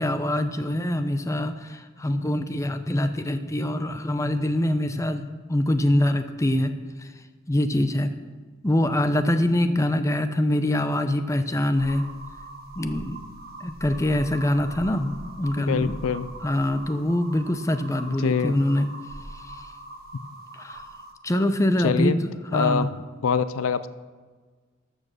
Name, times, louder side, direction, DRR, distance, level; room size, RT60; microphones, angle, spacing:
voice 1, 0.0-6.7 7.0-7.1 7.5-8.2 8.6-12.0 12.8-13.2 13.6-16.0 16.4-18.9 19.5-19.6 20.6-20.8 21.2-22.2 22.5-22.9, left 1 dB, 15° left, 9 dB, 0.6 m, -24 dB
sound 1, 11.8-21.1, right 1 dB, 45° right, 1.3 m, -42 dB
voice 2, 15.6-16.3 18.1-18.7 21.8-22.2 22.5-22.9 23.2-23.9, left 6 dB, 85° left, 14 dB, 0.5 m, -24 dB
13.5 x 6.4 x 6.6 m, 1.4 s
head